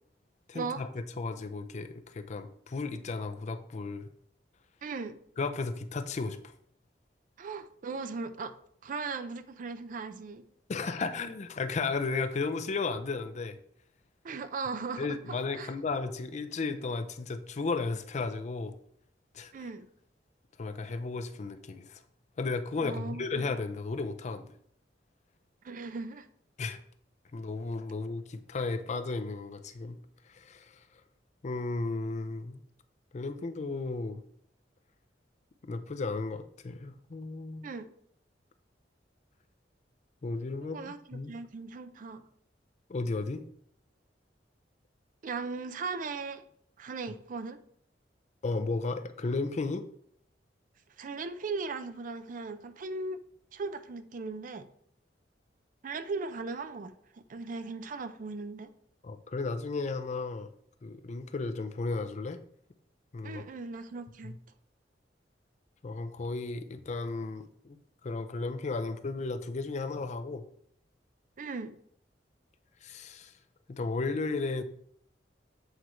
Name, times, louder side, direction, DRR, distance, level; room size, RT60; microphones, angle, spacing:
voice 1, 0.5-4.1 5.4-6.4 10.7-13.6 15.0-18.7 19.3-19.5 20.6-22.0 22.4-24.5 26.6-26.8 27.3-30.0 30.3-30.8 31.4-32.6 33.1-34.2 35.6-37.7 40.2-41.3 42.9-43.4 48.4-49.8 59.0-60.5 60.8-62.4 63.1-63.4 64.2-64.4 65.8-67.8 68.0-70.5 72.8-73.3 73.7-74.6, left 3 dB, 40° left, 9 dB, 0.4 m, -34 dB
voice 2, 4.8-5.2 7.4-8.5 8.8-10.4 14.2-15.7 19.5-19.9 22.8-23.5 25.6-26.3 37.6-37.9 40.6-42.2 45.2-46.4 46.8-47.6 51.0-53.2 53.5-54.6 55.8-58.7 63.2-64.3 71.4-71.7, right 4 dB, 50° right, 11 dB, 0.4 m, -38 dB
8.1 x 4.5 x 3.1 m, 0.65 s
head